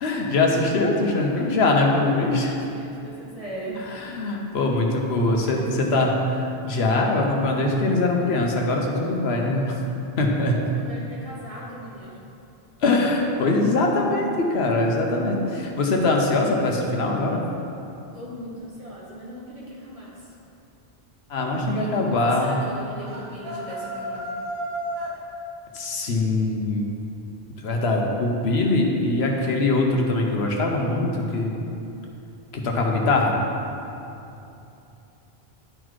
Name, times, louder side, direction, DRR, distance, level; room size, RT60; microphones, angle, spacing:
voice 1, 0.0-2.6 4.0-6.1 6.7-9.9 10.2-10.6 12.8-17.4 21.3-22.6 25.7-26.9 27.6-31.5 32.5-33.4, left 2 dB, 75° left, 1 dB, 1.1 m, -22 dB
voice 2, 1.0-1.5 2.1-3.8 5.1-5.7 5.9-6.1 10.3-12.2 18.1-20.3 21.7-24.3 33.8-34.6, right 1 dB, 35° right, -7 dB, 1.5 m, -40 dB
sound 1, 23.0-25.2, equal, 65° right, 1.3 m, -32 dB
10.0 x 4.0 x 4.7 m, 2.8 s
omnidirectional pair, 1.1 m